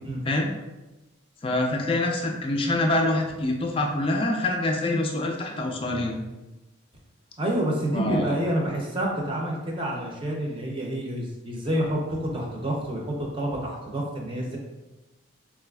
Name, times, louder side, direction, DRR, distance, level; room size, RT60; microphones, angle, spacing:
voice 1, 1.4-6.2 7.9-8.3, left 2 dB, 25° left, 1 dB, 0.3 m, -25 dB
voice 2, 7.4-14.6, right 1 dB, 25° right, -2 dB, 0.5 m, -28 dB
4.0 x 2.4 x 2.3 m, 1.1 s
head